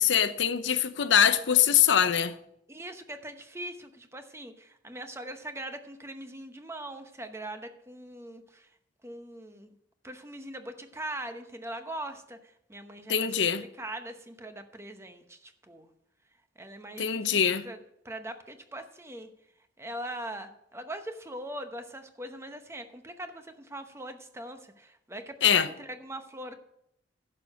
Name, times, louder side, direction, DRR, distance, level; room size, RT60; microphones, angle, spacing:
voice 1, 0.0-2.3 13.1-13.6 17.0-17.7 25.4-25.7, left 9 dB, 90° left, 0.7 m, -23 dB
voice 2, 2.7-8.7 9.0-9.7 10.0-13.3 13.6-15.9 16.6-17.8 18.0-19.3 19.8-26.6, right 1 dB, 15° right, 0.9 m, -41 dB
11.0 x 6.6 x 6.3 m
head